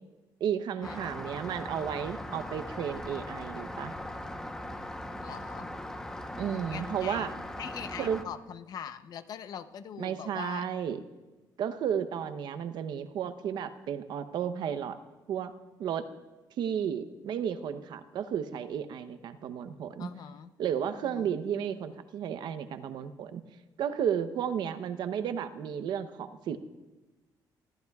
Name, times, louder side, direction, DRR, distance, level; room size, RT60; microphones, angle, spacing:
voice 1, 0.4-3.9 6.4-7.3 8.0-8.2 10.0-11.0 11.6-15.0 15.3-15.5 15.8-16.1 16.6-20.1 20.6-23.4 23.8-26.6, right 8 dB, 70° right, 10 dB, 0.8 m, -33 dB
Rain, 0.8-8.2, left 1 dB, 5° left, 0.9 m, -39 dB
voice 2, 5.2-5.7 6.7-7.3 7.6-10.7 20.0-20.5 21.0-21.3, left 8 dB, 55° left, 11 dB, 0.7 m, -42 dB
26.0 x 14.0 x 2.4 m, 1.2 s
cardioid pair, 150°, 8 cm